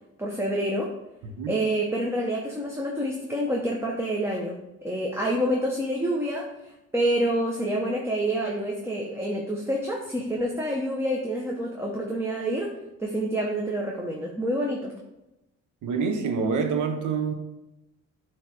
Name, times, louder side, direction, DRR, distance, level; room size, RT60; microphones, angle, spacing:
voice 1, 0.2-0.9 1.5-6.5 6.9-12.7 13.0-14.9, right 1 dB, 10° right, -1 dB, 1.0 m, -27 dB
voice 2, 1.2-1.6 15.8-17.3, right 5 dB, 75° right, 6 dB, 1.0 m, -27 dB
8.1 x 3.2 x 4.5 m, 0.93 s
cardioid pair, 90°, 30 cm